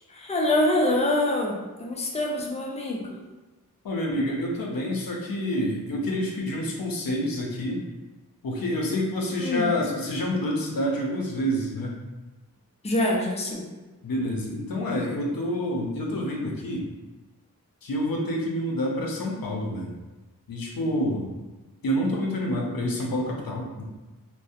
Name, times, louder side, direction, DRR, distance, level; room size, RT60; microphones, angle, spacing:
voice 1, 0.1-3.2 9.4-9.7 12.8-13.6, left 1 dB, 20° left, -1 dB, 0.4 m, -25 dB
voice 2, 3.8-7.8 8.4-12.0 14.0-16.9 17.8-19.9 20.5-21.3 21.8-23.8, equal, 75° left, -1 dB, 0.6 m, -28 dB
2.5 x 2.1 x 2.5 m, 1.2 s
wide cardioid pair, 45°, 35 cm